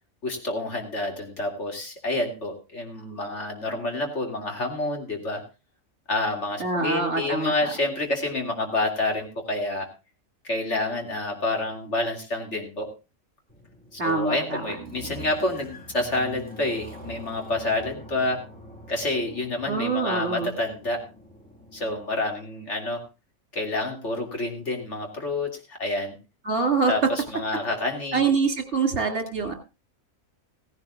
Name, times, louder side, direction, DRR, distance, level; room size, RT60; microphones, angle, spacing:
voice 1, 0.2-5.5 6.1-9.9 10.4-12.9 13.9-18.4 18.9-21.1 21.7-23.0 23.5-26.2 26.9-28.2, left 2 dB, 55° left, 3 dB, 2.7 m, -28 dB
voice 2, 6.6-7.7 14.0-14.6 19.6-20.5 26.4-26.9 28.1-29.5, right 4 dB, 55° right, 6 dB, 2.7 m, -25 dB
sound 1, 13.5-22.0, equal, 5° left, 2.3 m, -45 dB
16.0 x 15.5 x 2.4 m, 0.27 s
omnidirectional pair, 1.4 m